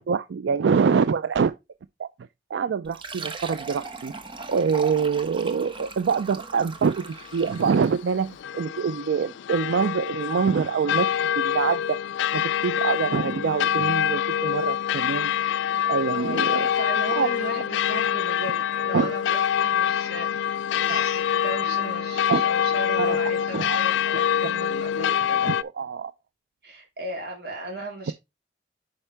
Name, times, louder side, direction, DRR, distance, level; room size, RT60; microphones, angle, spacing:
voice 1, 0.0-1.5 2.0-2.1 2.5-4.1 4.5-12.0 12.3-15.3 15.9-16.7 17.2-17.3 18.9-19.1 20.9-21.1 22.3-22.5 23.0-23.2 23.5-23.8 24.7-26.1, right 6 dB, 90° right, 0.4 m, -25 dB
Fill (with liquid), 2.8-8.0, right 3 dB, 30° right, 1.1 m, -38 dB
sound 1, 7.1-25.6, left 9 dB, 90° left, 0.3 m, -25 dB
voice 2, 16.1-25.5 26.6-28.1, right 1 dB, 60° right, 3.7 m, -36 dB
9.9 x 5.4 x 3.4 m
head